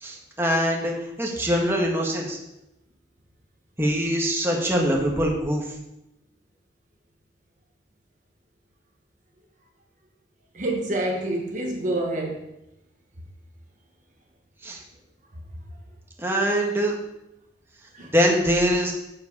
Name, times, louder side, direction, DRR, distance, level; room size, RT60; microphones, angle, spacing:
voice 1, 0.0-2.4 3.8-5.6 14.6-14.8 16.2-17.0 18.1-18.9, equal, 15° right, -1 dB, 1.5 m, -23 dB
voice 2, 10.5-12.4 17.9-18.1, right 1 dB, 40° right, 1 dB, 1.3 m, -27 dB
7.9 x 7.5 x 5.4 m, 0.88 s
head